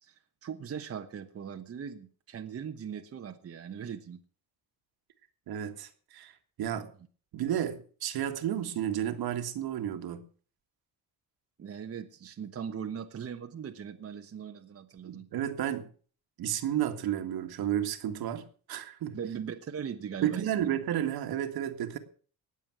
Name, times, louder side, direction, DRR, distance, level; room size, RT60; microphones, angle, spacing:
voice 1, 0.0-4.2 11.6-15.3 19.1-20.7, right 7 dB, 35° right, 5 dB, 1.2 m, -40 dB
voice 2, 5.5-6.3 6.6-6.9 7.3-10.2 15.0-15.9 16.4-19.2 20.2-22.0, right 10 dB, 70° right, 7 dB, 1.9 m, -32 dB
19.0 x 7.4 x 6.1 m, 0.43 s
cardioid pair, 130°, 38 cm